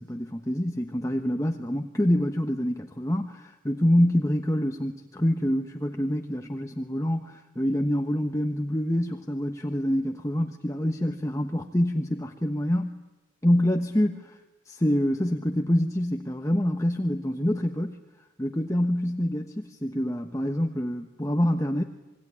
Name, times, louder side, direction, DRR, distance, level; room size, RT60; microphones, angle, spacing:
voice 1, 0.0-13.0 13.4-14.4 14.6-18.0 18.4-21.8, equal, 15° left, 4 dB, 1.2 m, -26 dB
26.0 x 23.5 x 9.8 m, 1.1 s
head